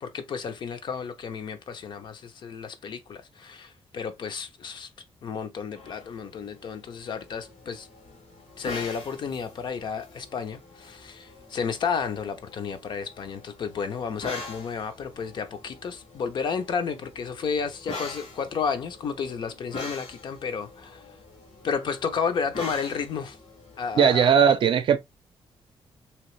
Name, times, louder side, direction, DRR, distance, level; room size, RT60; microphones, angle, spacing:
voice 1, 0.0-4.9 5.2-7.9 8.6-21.0 21.6-23.4 23.8-24.3, left 6 dB, 50° left, 0.6 m, -32 dB
sound 1, 5.8-24.4, left 2 dB, 85° left, 1.5 m, -44 dB
voice 2, 23.9-25.0, right 7 dB, 55° right, 0.5 m, -18 dB
3.4 x 2.9 x 3.1 m
wide cardioid pair, 170°, 10 cm